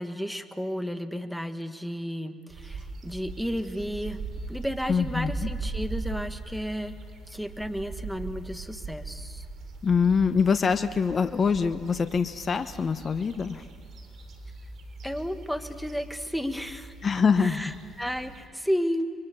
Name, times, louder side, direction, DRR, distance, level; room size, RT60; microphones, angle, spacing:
voice 1, 0.0-4.2 4.5-7.0 7.3-9.5 15.0-16.9 17.4-19.0, equal, ahead, 9 dB, 1.9 m, -32 dB
sound 1, 2.5-18.5, right 3 dB, 60° right, 3.7 m, -40 dB
voice 2, 4.9-5.5 9.8-13.6 17.0-17.7, left 5 dB, 40° left, 11 dB, 1.1 m, -24 dB
29.5 x 23.5 x 7.3 m, 2.1 s
hypercardioid pair, 60°, 0 cm